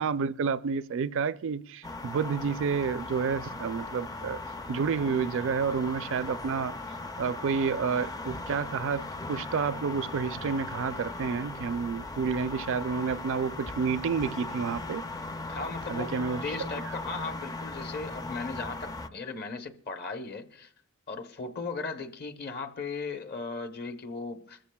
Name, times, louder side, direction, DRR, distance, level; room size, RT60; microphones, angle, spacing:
voice 1, 0.0-4.4 4.7-6.7 7.2-15.0 15.9-16.4, right 5 dB, 60° right, 0.4 m, -30 dB
sound 1, 1.8-19.1, left 2 dB, 15° left, 0.4 m, -38 dB
voice 2, 15.5-20.7 21.1-24.6, left 4 dB, 50° left, 0.9 m, -37 dB
25.5 x 14.0 x 2.3 m
head